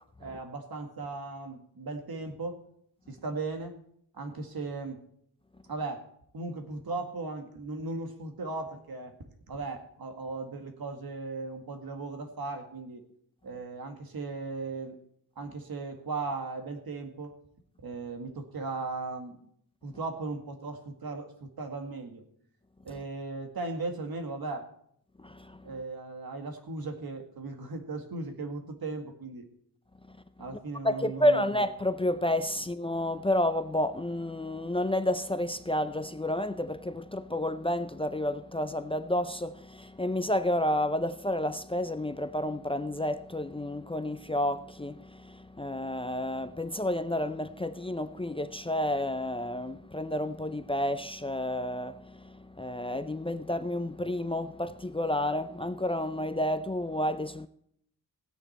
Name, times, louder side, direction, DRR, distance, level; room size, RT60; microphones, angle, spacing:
voice 1, 0.2-2.6 3.1-3.8 4.1-5.0 5.7-6.0 6.3-9.2 9.5-13.0 13.4-15.0 15.4-17.4 17.8-19.4 19.8-22.2 22.8-24.7 25.6-29.5 30.4-31.5, right 3 dB, 75° right, 2.0 m, -37 dB
voice 2, 25.2-25.6 30.8-57.5, left 1 dB, 15° left, 0.5 m, -30 dB
16.0 x 9.8 x 4.3 m
wide cardioid pair, 110°, 36 cm